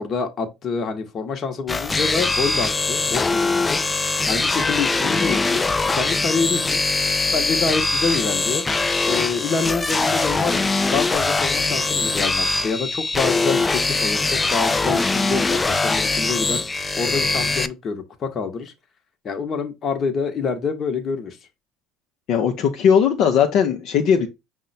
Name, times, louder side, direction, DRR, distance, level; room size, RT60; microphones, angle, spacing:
voice 1, 0.0-3.8 4.3-5.6 5.9-6.8 7.3-8.6 9.1-18.7 19.2-21.4, left 5 dB, 40° left, 0.9 m, -26 dB
sound 1, 1.7-17.7, left 3 dB, 20° left, 0.3 m, -22 dB
voice 2, 22.3-24.3, left 7 dB, 65° left, 0.6 m, -18 dB
5.4 x 2.2 x 3.9 m
supercardioid pair, 95°, 0 cm